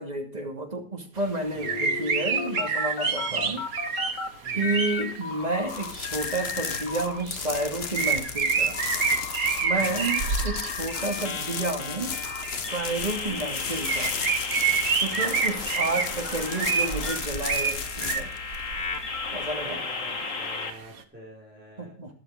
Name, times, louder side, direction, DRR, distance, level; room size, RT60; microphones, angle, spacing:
voice 1, 0.0-3.6 4.6-8.8 9.6-12.1 12.7-14.2 14.9-18.3 19.3-19.8 21.8-22.1, right 2 dB, 30° right, 3 dB, 2.7 m, -31 dB
sound 1, 1.2-1.3 1.6-5.0 5.8-5.9 6.4-6.8 7.1-7.3 7.9-11.1 12.3-12.5 12.8-13.5 13.8-19.3 19.8-19.9 20.1-20.2 21.0-21.1, right 5 dB, 85° right, 1.8 m, -28 dB
voice 2, 1.5-1.9 3.3-3.6 4.4-4.8 9.7-10.1 13.3-13.6 15.1-15.5 19.6-22.0, right 1 dB, 5° right, -6 dB, 5.1 m, -47 dB
sound 2, 1.6-4.3 4.6-7.2 7.5-20.7, left 4 dB, 65° left, 2.1 m, -35 dB
sound 3, 5.7-19.6, left 6 dB, 50° left, 1.2 m, -35 dB
12.0 x 12.0 x 5.0 m, 0.39 s
omnidirectional pair, 1.5 m